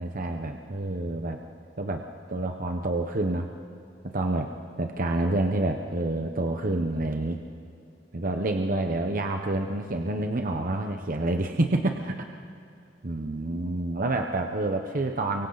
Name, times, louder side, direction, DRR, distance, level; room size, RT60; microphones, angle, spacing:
voice 1, 0.0-1.4 1.8-3.5 4.1-4.5 4.8-7.4 8.1-12.1 13.0-15.5, right 2 dB, 50° right, 4 dB, 1.0 m, -28 dB
29.5 x 24.0 x 4.1 m, 2.5 s
head